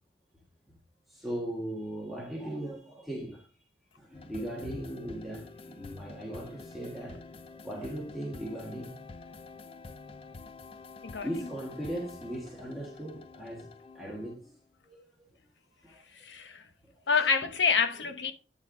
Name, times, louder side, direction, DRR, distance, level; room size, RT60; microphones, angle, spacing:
voice 1, 1.1-3.5 4.0-7.2 7.6-9.0 11.2-13.7 13.9-14.5 14.8-15.0 15.8-16.0, right 1 dB, ahead, 1.4 m, -38 dB
sound 1, 4.1-14.5, left 3 dB, 30° left, 0.5 m, -48 dB
voice 2, 11.0-11.5 16.1-16.7 17.1-18.3, left 5 dB, 90° left, 0.9 m, -28 dB
9.5 x 4.2 x 3.8 m
head